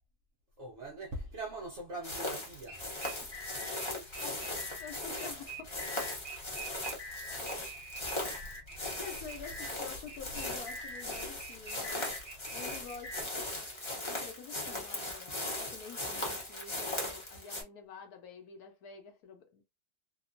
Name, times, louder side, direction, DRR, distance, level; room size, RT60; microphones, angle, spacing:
voice 1, 0.6-2.9, right 2 dB, 65° right, 0.7 m, -42 dB
sound 1, 2.0-17.6, left 1 dB, 40° left, 0.4 m, -39 dB
sound 2, 2.5-13.2, right 1 dB, 25° right, 1.3 m, -46 dB
voice 2, 3.2-6.0 7.5-7.9 9.0-12.2 12.5-13.3 14.0-19.6, left 6 dB, 70° left, 1.0 m, -49 dB
2.8 x 2.2 x 2.5 m
omnidirectional pair, 1.8 m